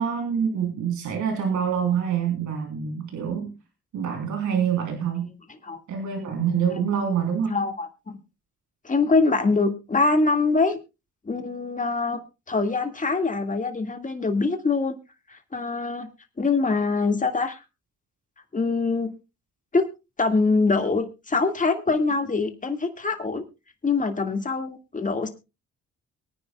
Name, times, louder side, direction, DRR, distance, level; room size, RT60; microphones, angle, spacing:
voice 1, 0.0-3.5 3.9-5.3 5.9-7.5, right 7 dB, 85° right, 2 dB, 3.5 m, -26 dB
voice 2, 7.5-8.2 8.8-10.8 11.3-12.2 12.5-15.0 15.3-16.1 16.4-17.6 18.5-19.1 19.7-19.8 20.2-23.4 23.8-25.3, left 3 dB, 25° left, 6 dB, 1.9 m, -24 dB
23.0 x 9.8 x 2.3 m, 0.27 s
cardioid pair, 90°, 29 cm